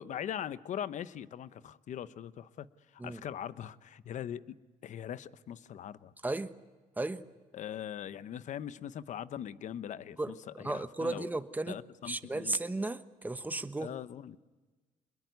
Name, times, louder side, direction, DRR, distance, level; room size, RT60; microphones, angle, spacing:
voice 1, 0.0-2.7 2.9-4.5 4.8-6.1 7.5-11.3 11.7-12.6 13.8-14.4, left 10 dB, 60° left, 0.9 m, -41 dB
voice 2, 10.2-11.8 12.1-13.9, right 2 dB, 10° right, 1.2 m, -35 dB
25.5 x 21.5 x 9.5 m
cardioid pair, 95°, 14 cm